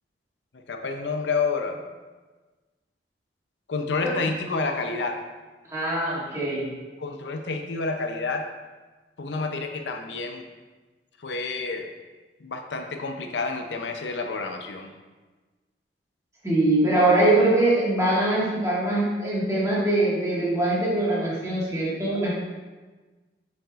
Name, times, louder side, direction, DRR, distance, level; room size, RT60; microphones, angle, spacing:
voice 1, 0.7-1.8 3.7-5.2 7.0-8.5 9.2-10.5 11.2-11.9 12.4-14.9, left 4 dB, 85° left, 5 dB, 0.6 m, -29 dB
voice 2, 5.7-6.7 16.4-22.4, right 2 dB, 20° right, -7 dB, 1.7 m, -22 dB
7.3 x 5.9 x 2.4 m, 1.3 s
head